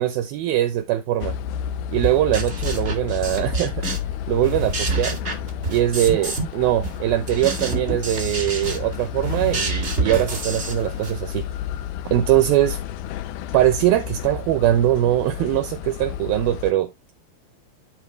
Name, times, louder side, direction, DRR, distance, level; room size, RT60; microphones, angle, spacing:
voice 1, 0.0-1.4 1.9-3.8 4.3-5.2 5.7-11.5 12.1-12.8 13.5-16.9, right 13 dB, 75° right, 2.3 m, -21 dB
sound 1, 1.2-16.7, left 9 dB, 75° left, 2.4 m, -31 dB
sound 2, 2.0-4.1 4.4-6.5 6.8-11.2, right 3 dB, 40° right, 0.9 m, -28 dB
12.0 x 4.3 x 3.2 m
omnidirectional pair, 4.8 m